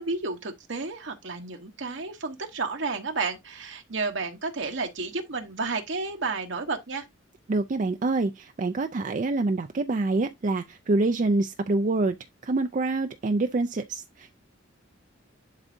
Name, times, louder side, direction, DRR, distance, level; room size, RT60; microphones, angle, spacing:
voice 1, 0.0-7.1, right 4 dB, 65° right, 1.0 m, -31 dB
voice 2, 7.5-12.2 12.4-14.3, right 2 dB, 40° right, 0.4 m, -26 dB
10.5 x 4.0 x 2.6 m
head